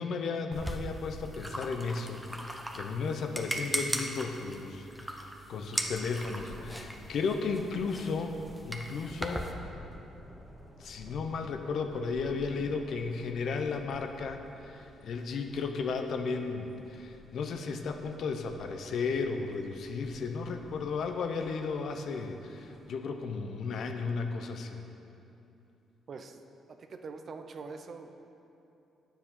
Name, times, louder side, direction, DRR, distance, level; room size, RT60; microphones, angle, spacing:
voice 1, 0.0-8.4 8.6-9.5 10.8-24.8, left 4 dB, 65° left, 5 dB, 0.8 m, -34 dB
sound 1, 0.5-9.5, right 1 dB, 5° right, 0.9 m, -38 dB
Thunder, 5.8-22.9, equal, 10° left, 1.9 m, -53 dB
voice 2, 26.1-26.4 26.7-28.1, right 4 dB, 50° right, 6 dB, 0.7 m, -43 dB
9.8 x 7.2 x 5.6 m, 2.8 s
cardioid pair, 90°, 0 cm